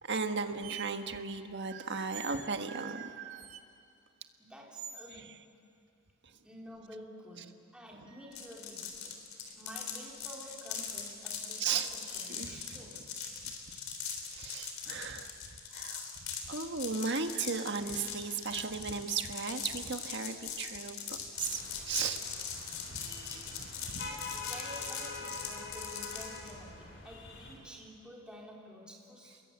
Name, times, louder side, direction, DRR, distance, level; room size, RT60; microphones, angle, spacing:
voice 1, 0.0-3.4 5.1-5.3 6.2-6.4 7.4-7.5 9.5-9.6 11.6-11.9 12.4-12.9 13.4-13.8 14.3-15.3 15.7-22.2 22.9-23.2 23.9-24.1, right 5 dB, 60° right, 6 dB, 1.5 m, -36 dB
sound 1, 0.6-0.9 2.1-2.5 3.3-3.6 4.7-5.1 8.1-8.6 10.2-10.9 12.0-12.3 12.6-12.7 14.6-14.7 15.0-15.1 16.8-17.0 18.6-18.7 19.5-19.6, right 7 dB, 80° right, 1.8 m, -48 dB
voice 2, 4.4-5.4 6.4-9.2 9.5-13.1 24.0-29.4, equal, 5° right, -3 dB, 3.9 m, -50 dB
sound 2, 8.3-26.5, left 7 dB, 85° left, 3.8 m, -41 dB
sound 3, 21.3-27.6, left 3 dB, 60° left, 5.2 m, -45 dB
30.0 x 22.0 x 8.7 m, 2.5 s
head